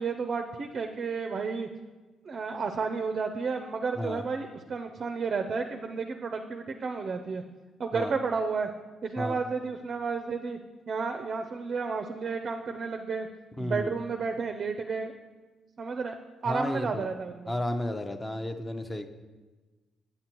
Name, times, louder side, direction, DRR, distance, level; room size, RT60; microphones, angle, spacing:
voice 1, 0.0-1.7 2.2-7.4 7.8-8.7 9.0-10.6 10.9-13.3 13.6-15.1 15.8-16.1 16.4-17.5, right 5 dB, 45° right, 6 dB, 0.4 m, -32 dB
voice 2, 13.6-13.9 16.4-17.1 17.5-19.1, left 1 dB, 15° left, 7 dB, 0.5 m, -32 dB
7.6 x 7.6 x 2.9 m, 1.3 s
cardioid pair, 90°, 0 cm